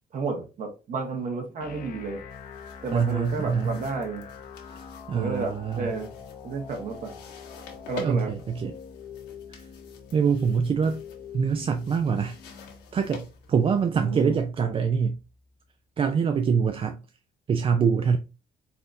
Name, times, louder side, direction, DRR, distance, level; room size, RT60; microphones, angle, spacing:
voice 1, 0.1-2.2 2.8-4.2 5.1-6.1 6.4-7.2 7.9-8.3 13.9-14.4, right 4 dB, 50° right, 1.5 m, -31 dB
sound 1, 1.6-15.6, left 6 dB, 60° left, 0.8 m, -45 dB
sound 2, 2.3-14.4, left 5 dB, 85° left, 1.4 m, -48 dB
voice 2, 2.9-3.8 4.6-5.9 8.0-8.7 9.5-9.6 10.1-11.0 11.3-12.4 12.9-15.2 16.0-17.0 17.5-18.2, right 6 dB, 30° right, 0.4 m, -25 dB
4.1 x 3.8 x 2.7 m
cardioid pair, 110°, 17 cm